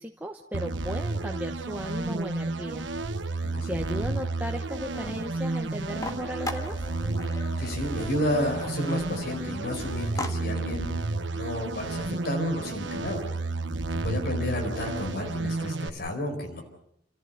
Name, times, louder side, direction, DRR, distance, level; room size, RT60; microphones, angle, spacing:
voice 1, 0.0-2.9 3.2-3.4 3.7-6.9, equal, 10° right, 3 dB, 1.0 m, -36 dB
sound 1, 0.5-15.9, right 3 dB, 80° right, 1.1 m, -31 dB
sound 2, 4.9-10.3, left 2 dB, 20° left, 1.7 m, -40 dB
voice 2, 7.6-10.9 11.3-13.2 14.0-16.6, left 1 dB, 60° left, 3 dB, 4.8 m, -31 dB
30.0 x 15.0 x 8.1 m, 0.75 s
head